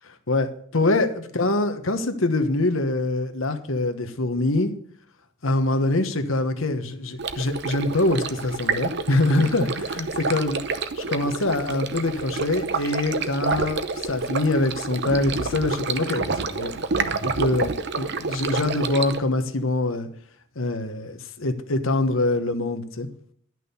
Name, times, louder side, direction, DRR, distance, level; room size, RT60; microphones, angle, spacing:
voice 1, 0.3-4.7 5.4-10.6 11.0-20.1 20.5-23.1, left 2 dB, 75° left, 8 dB, 1.2 m, -24 dB
Stream, 7.2-19.2, right 4 dB, 55° right, 0.8 m, -28 dB
11.0 x 6.2 x 7.0 m, 0.64 s
head